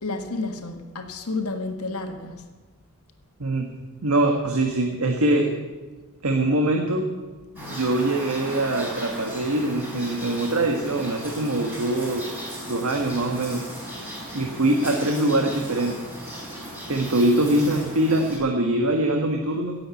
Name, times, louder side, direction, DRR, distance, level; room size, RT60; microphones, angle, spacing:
voice 1, 0.0-2.4 7.5-7.8, left 3 dB, 85° left, 5 dB, 1.6 m, -31 dB
voice 2, 4.0-5.5 6.2-7.1 7.7-12.3 12.6-13.6 14.3-16.0 16.9-19.8, right 1 dB, 80° right, 3 dB, 1.4 m, -23 dB
sound 1, 7.6-18.4, equal, 10° right, 5.4 m, -36 dB
17.0 x 7.8 x 8.4 m, 1.3 s
head